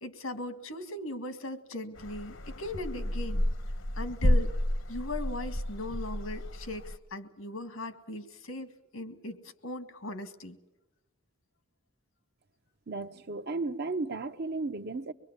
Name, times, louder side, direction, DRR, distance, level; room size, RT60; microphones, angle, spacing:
voice 1, 0.0-3.5 4.0-4.5 4.9-10.6, left 1 dB, 90° left, 2.0 m, -39 dB
sound 1, 2.0-7.0, left 1 dB, 70° left, 1.1 m, -31 dB
voice 2, 12.9-15.1, right 3 dB, 50° right, 0.9 m, -34 dB
24.5 x 22.0 x 7.4 m
head